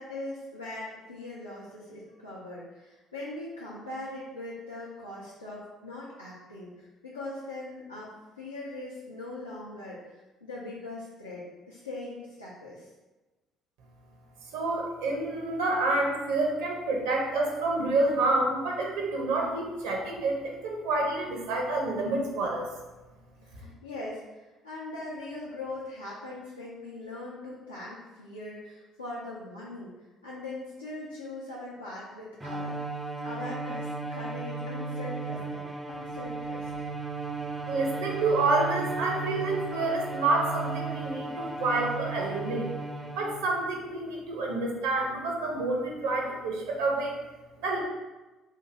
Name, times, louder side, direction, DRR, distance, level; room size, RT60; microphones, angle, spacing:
voice 1, 0.0-12.9 23.4-29.9 30.2-32.8 33.2-36.7, left 2 dB, 85° left, -9 dB, 0.5 m, -41 dB
voice 2, 14.5-22.7 37.6-42.7 43.2-47.2 47.6-47.8, right 2 dB, 65° right, 0 dB, 0.7 m, -28 dB
Bowed string instrument, 32.4-43.6, right 3 dB, 20° right, 0.4 m, -35 dB
2.9 x 2.6 x 3.8 m, 1.1 s
figure-of-eight pair, 50°, 0 cm